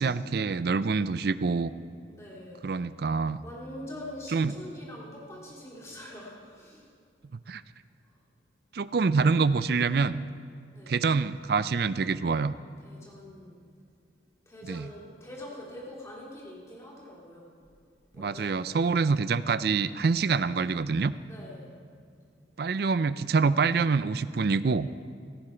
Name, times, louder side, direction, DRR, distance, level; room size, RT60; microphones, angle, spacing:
voice 1, 0.0-1.7 2.6-3.4 4.3-4.5 7.5-7.6 8.7-10.2 10.9-12.5 14.7-14.9 18.2-21.1 22.6-24.9, right 4 dB, 55° right, 15 dB, 0.4 m, -26 dB
voice 2, 2.1-2.6 3.4-6.9 10.7-11.0 12.8-13.5 14.5-17.5 18.1-19.0 21.3-21.7, left 1 dB, 15° left, -4 dB, 2.7 m, -44 dB
16.0 x 13.5 x 4.5 m, 2.3 s
head